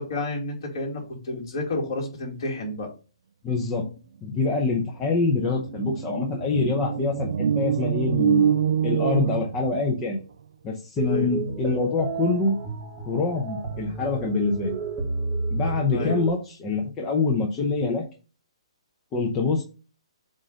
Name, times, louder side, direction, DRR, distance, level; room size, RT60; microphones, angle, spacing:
voice 1, 0.0-2.9 11.0-11.3 15.9-16.2, left 2 dB, 45° left, -1 dB, 2.4 m, -30 dB
voice 2, 3.4-3.9 4.2-8.5 8.8-10.2 10.6-12.6 13.1-14.8 15.5-18.0 19.1-19.6, left 4 dB, 15° left, -1 dB, 0.7 m, -25 dB
sound 1, 4.7-4.8 5.0-10.1, right 8 dB, 65° right, 0.4 m, -25 dB
sound 2, 11.0-16.3, right 3 dB, 10° right, 1.0 m, -31 dB
7.5 x 2.6 x 5.1 m, 0.34 s
hypercardioid pair, 170°, 3 cm